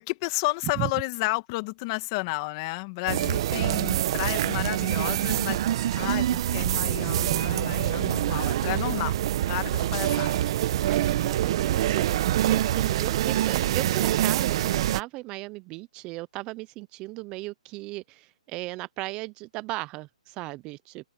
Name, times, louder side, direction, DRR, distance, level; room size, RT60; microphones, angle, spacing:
voice 1, 0.0-5.6 6.0-9.2 9.5-10.3, left 25 dB, 30° left, 1.6 m, -31 dB
sound 1, 3.1-15.0, right 12 dB, 40° right, 1.0 m, -25 dB
voice 2, 10.9-21.1, right 21 dB, 20° right, 0.6 m, -36 dB
open air
hypercardioid pair, 155°, 4 cm